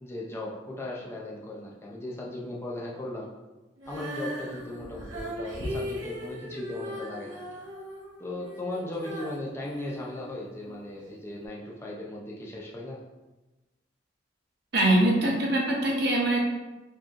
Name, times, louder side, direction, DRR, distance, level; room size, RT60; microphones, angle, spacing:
voice 1, 0.0-3.3 3.9-7.4 8.2-13.0, left 1 dB, 15° left, -4 dB, 0.4 m, -37 dB
Female singing, 3.8-10.8 11.4-11.5, equal, 90° right, 1.0 m, -39 dB
voice 2, 14.7-16.4, right 1 dB, 55° right, -1 dB, 0.8 m, -23 dB
4.6 x 3.0 x 2.4 m, 1.1 s
head